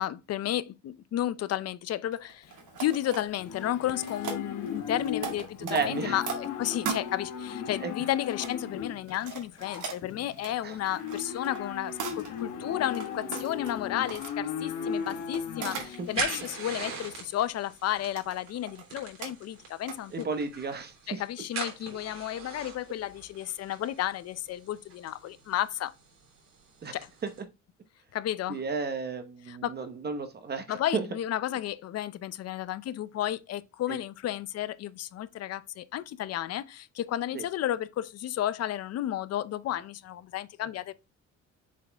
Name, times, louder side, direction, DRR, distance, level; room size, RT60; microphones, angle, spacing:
voice 1, 0.0-2.5 2.8-20.3 21.1-25.9 26.9-27.1 28.1-28.6 29.5-29.8 30.7-40.9, left 12 dB, 55° left, 0.6 m, -32 dB
sound 1, 2.1-3.5 3.8-7.0 7.7-8.5 9.1-12.5 12.9-14.3 15.1-15.9 16.3-16.9 17.4-17.8 18.1-18.8 19.2-19.3 19.9-20.4 20.7-20.8, right 6 dB, 75° right, 2.0 m, -39 dB
Livestock farm animals working animals, 2.4-17.2, left 7 dB, 90° left, 1.3 m, -37 dB
voice 2, 5.6-6.2 7.8-7.9 10.6-10.8 15.7-15.9 20.1-21.2 26.8-27.0 28.5-31.1 33.9-34.0 37.3-37.4, right 4 dB, 35° right, 0.9 m, -33 dB
sound 2, 14.9-27.4, right 5 dB, 60° right, 3.3 m, -42 dB
7.4 x 4.2 x 3.4 m
cardioid pair, 130°, 30 cm